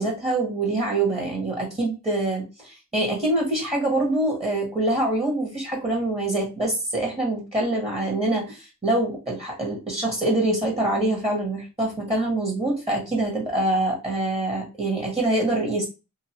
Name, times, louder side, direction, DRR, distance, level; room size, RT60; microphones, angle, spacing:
voice 1, 0.0-15.9, right 2 dB, 15° right, -3 dB, 1.3 m, -25 dB
2.7 x 2.6 x 3.0 m, 0.29 s
wide cardioid pair, 60°, 36 cm